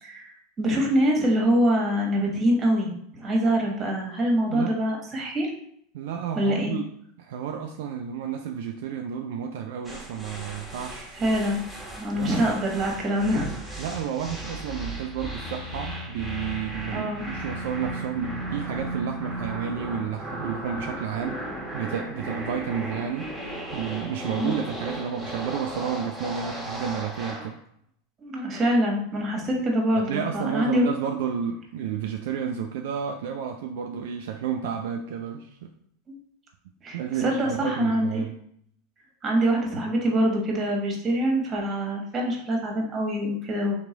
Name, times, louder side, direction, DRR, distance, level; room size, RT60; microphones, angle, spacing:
voice 1, 0.0-5.5 6.3-6.7 11.2-11.6 12.0-13.8 16.9-17.2 24.4-24.6 27.3-27.4 28.2-30.9 36.1-36.2 36.8-38.2 39.2-43.8, equal, 30° right, 0 dB, 1.4 m, -25 dB
voice 2, 5.9-6.9 7.2-11.2 12.1-12.4 13.8-21.4 21.7-23.3 23.7-27.5 30.0-35.7 36.9-38.4, right 8 dB, 65° right, 3 dB, 0.3 m, -31 dB
sound 1, 9.8-27.5, right 1 dB, 5° left, 1.4 m, -36 dB
3.5 x 3.0 x 3.8 m, 0.69 s
hypercardioid pair, 90°, 0 cm